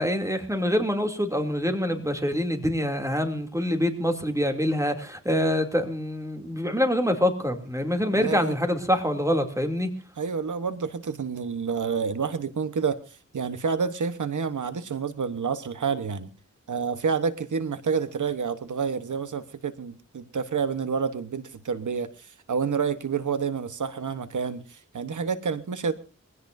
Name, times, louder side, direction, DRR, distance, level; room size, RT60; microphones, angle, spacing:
voice 1, 0.0-9.9, equal, 10° right, 5 dB, 2.7 m, -25 dB
voice 2, 8.1-8.5 10.2-13.0 13.3-16.3 16.7-25.9, right 6 dB, 85° right, 11 dB, 1.1 m, -29 dB
23.0 x 16.5 x 2.6 m, 0.34 s
wide cardioid pair, 70°, 30 cm